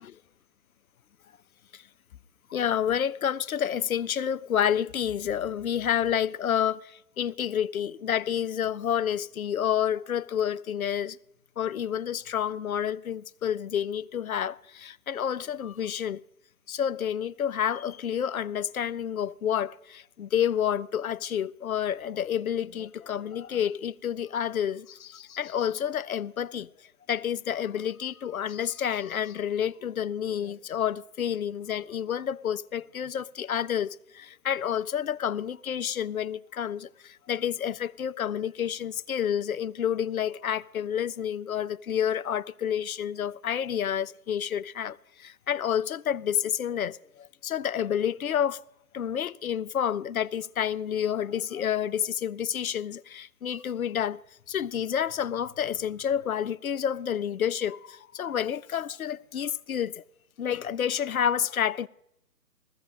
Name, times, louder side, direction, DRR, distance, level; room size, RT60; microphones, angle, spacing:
voice 1, 2.5-11.2 11.6-16.2 16.7-48.6 48.9-54.2 54.5-60.0 60.4-61.9, left 9 dB, 65° left, 0.5 m, -29 dB
15.5 x 14.0 x 3.7 m
figure-of-eight pair, 145°, 47 cm